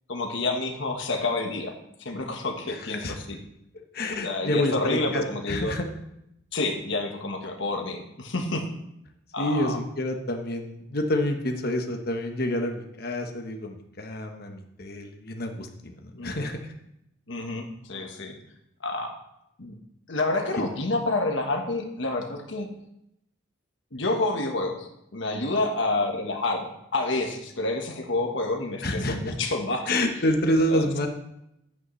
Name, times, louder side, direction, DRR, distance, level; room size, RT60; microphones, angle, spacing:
voice 1, 0.1-1.7 2.0-3.4 4.2-5.7 6.5-8.7 9.3-9.8 16.1-16.4 17.3-18.4 18.8-19.2 19.6-19.7 20.1-22.7 23.9-30.0 30.5-31.1, left 2 dB, 70° left, 3 dB, 1.3 m, -29 dB
voice 2, 3.9-5.9 9.4-16.7 28.8-29.3 29.9-31.1, left 1 dB, 50° left, 4 dB, 1.1 m, -28 dB
11.0 x 8.6 x 3.2 m, 0.80 s
head